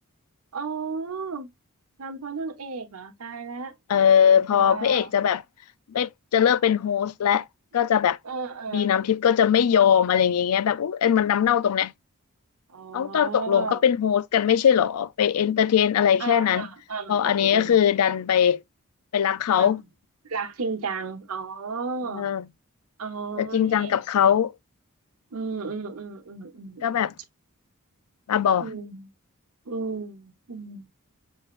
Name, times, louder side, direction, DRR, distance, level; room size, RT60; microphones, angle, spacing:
voice 1, 0.5-1.5 2.0-3.8 4.5-5.1 8.2-9.0 12.7-13.8 16.2-17.7 19.6-19.7 20.2-22.3 23.0-24.0 25.3-27.1 28.6-29.1 29.7-30.9, right 4 dB, 80° right, 1.0 m, -34 dB
voice 2, 3.9-5.4 5.9-7.4 7.7-8.2 8.7-11.9 12.9-16.7 17.1-18.6 19.1-19.8 22.1-22.4 23.4-24.5 26.8-27.1 28.3-28.7, left 8 dB, 85° left, 0.4 m, -21 dB
6.3 x 3.1 x 2.5 m
head